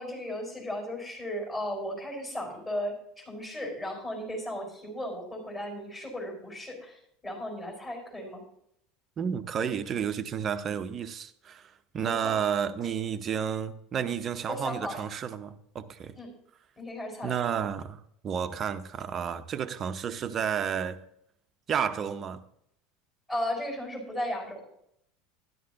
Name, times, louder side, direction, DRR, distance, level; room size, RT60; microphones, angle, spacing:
voice 1, 0.0-2.9 3.2-8.4 12.0-12.3 14.5-15.0 16.2-16.3 16.8-17.3 23.3-24.6, left 1 dB, 20° left, 4.6 m, -35 dB
voice 2, 9.2-16.2 17.2-21.0 21.7-22.4, right 7 dB, 35° right, 0.7 m, -31 dB
13.0 x 11.0 x 2.9 m
figure-of-eight pair, 70°, 0 cm